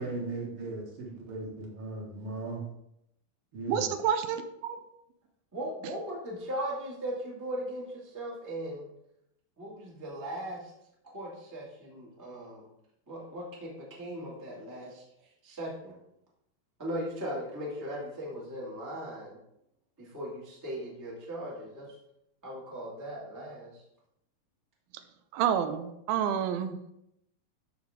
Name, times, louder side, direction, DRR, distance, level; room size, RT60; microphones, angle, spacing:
voice 1, 0.0-2.6 3.5-3.9, right 2 dB, 50° right, -2 dB, 1.9 m, -37 dB
voice 2, 3.7-4.8 25.3-26.8, right 8 dB, 85° right, 9 dB, 2.5 m, -29 dB
voice 3, 5.5-8.9 9.6-10.7 11.0-12.7 13.1-15.0 15.4-16.0 16.8-19.4 20.0-21.9 22.4-23.8, equal, 10° right, -5 dB, 1.0 m, -38 dB
12.0 x 4.0 x 3.6 m, 0.81 s
omnidirectional pair, 4.3 m